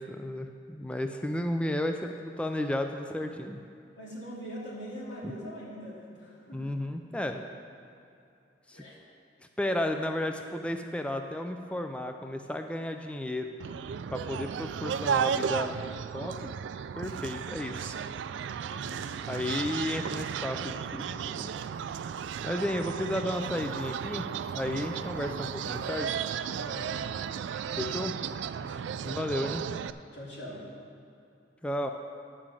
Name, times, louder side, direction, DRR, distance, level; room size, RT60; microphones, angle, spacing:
voice 1, 0.0-3.6 6.5-7.4 8.7-8.8 9.6-13.7 14.1-15.8 16.1-16.6 17.0-18.0 19.3-21.6 22.4-24.3 24.5-26.2 27.8-28.1 29.0-29.6 31.6-31.9, left 1 dB, 5° left, 5 dB, 0.4 m, -33 dB
voice 2, 3.9-6.8 8.7-9.0 18.6-19.2 22.5-22.8 24.7-25.1 26.4-27.1 28.6-29.1 30.1-30.7, equal, 90° left, -6 dB, 2.8 m, -43 dB
sound 1, 13.6-29.9, right 7 dB, 75° right, 0.3 m, -34 dB
10.5 x 5.0 x 7.4 m, 2.6 s
head